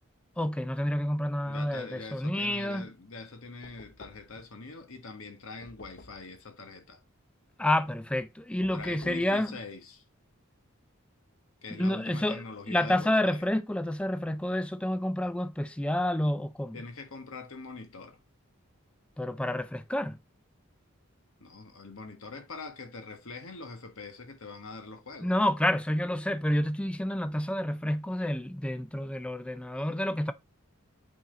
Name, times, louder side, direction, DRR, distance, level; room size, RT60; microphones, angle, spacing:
voice 1, 0.4-2.9 7.6-9.5 11.8-16.8 19.2-20.2 25.2-30.3, left 1 dB, 5° left, 0.3 m, -29 dB
voice 2, 1.4-7.0 8.7-10.0 11.6-13.4 16.7-18.2 21.4-25.3, left 3 dB, 75° left, 1.4 m, -43 dB
Knock, 3.6-4.5 5.6-6.4 8.6-9.3, left 3 dB, 50° left, 0.8 m, -52 dB
8.4 x 4.0 x 3.9 m
head